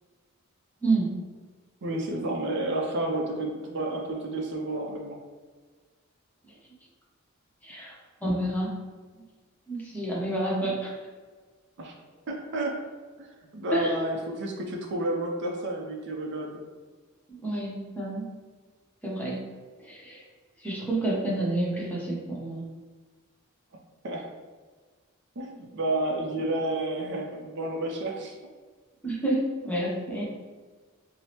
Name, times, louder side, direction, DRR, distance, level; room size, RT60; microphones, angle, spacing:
voice 1, 1.8-5.2 11.8-11.9 12.3-12.8 13.2-13.3 13.5-16.6 24.0-24.3 25.4-28.3, right 1 dB, 55° right, 1 dB, 0.5 m, -30 dB
voice 2, 7.6-7.9 8.2-8.7 9.1-9.2 9.7-10.9 13.7-14.0 17.3-18.3 19.0-19.4 19.8-20.2 20.6-22.7 29.0-30.2, right 2 dB, 10° left, -6 dB, 0.8 m, -29 dB
4.6 x 2.0 x 2.9 m, 1.4 s
head